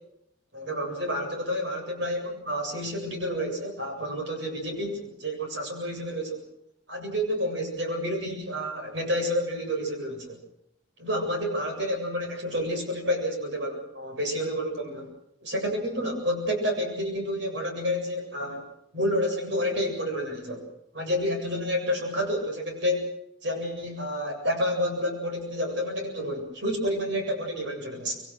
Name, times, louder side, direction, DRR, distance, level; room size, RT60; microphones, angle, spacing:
voice 1, 0.5-6.5 6.9-10.4 11.0-15.1 15.4-18.6 18.9-20.6 20.9-23.1 23.4-28.2, equal, 65° right, 3 dB, 7.8 m, -29 dB
26.5 x 22.5 x 6.3 m, 0.77 s
head